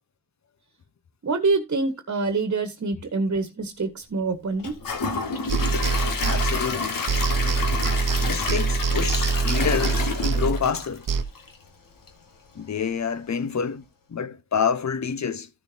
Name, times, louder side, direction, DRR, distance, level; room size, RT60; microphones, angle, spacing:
voice 1, 1.2-4.7, right 3 dB, 45° right, 1.5 m, -26 dB
Gurgling / Toilet flush / Trickle dribble, 4.6-11.7 12.1-12.2 12.6-12.7, left 4 dB, 65° left, 1.9 m, -29 dB
sound 1, 5.5-6.8 7.1-11.2, right 4 dB, 60° right, 0.9 m, -24 dB
voice 2, 6.2-7.0 8.2-11.1 12.5-13.8 14.1-15.5, left 6 dB, 50° left, 1.1 m, -27 dB
13.5 x 6.6 x 2.8 m
cardioid pair, 55°, 36 cm